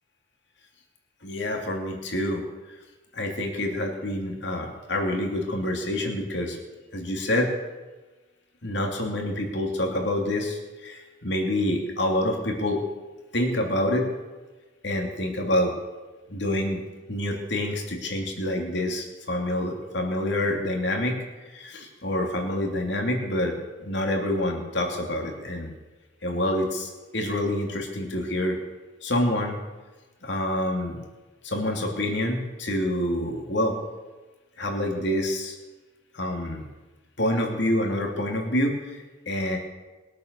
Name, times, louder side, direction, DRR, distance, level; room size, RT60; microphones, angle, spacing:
voice 1, 1.2-2.4 3.1-6.6 6.9-7.5 8.6-12.8 13.3-14.1 14.8-15.7 16.3-16.8 17.1-21.2 21.5-25.7 26.2-28.6 29.0-29.6 30.2-31.0 31.4-33.8 34.6-35.6 36.1-36.6 37.2-39.6, left 1 dB, 65° left, 2 dB, 2.8 m, -27 dB
21.5 x 8.3 x 6.8 m, 1.2 s
head